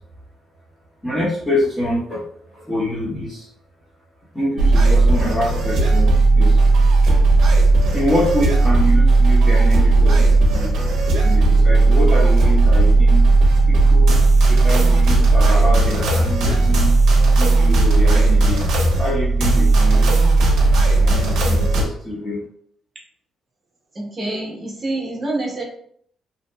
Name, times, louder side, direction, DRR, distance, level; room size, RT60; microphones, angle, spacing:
voice 1, 1.0-2.2 2.5-3.5 4.3-6.6 7.8-10.7 11.2-13.2 13.7-14.2 14.5-16.9 17.4-18.6 19.0-20.1 21.0-22.4, left 1 dB, 15° left, -9 dB, 0.8 m, -25 dB
sound 1, 4.6-21.8, right 3 dB, 75° right, 0.6 m, -15 dB
voice 2, 23.9-25.6, right 2 dB, 35° right, -2 dB, 0.8 m, -26 dB
2.7 x 2.4 x 2.2 m, 0.64 s
cardioid pair, 105°, 0 cm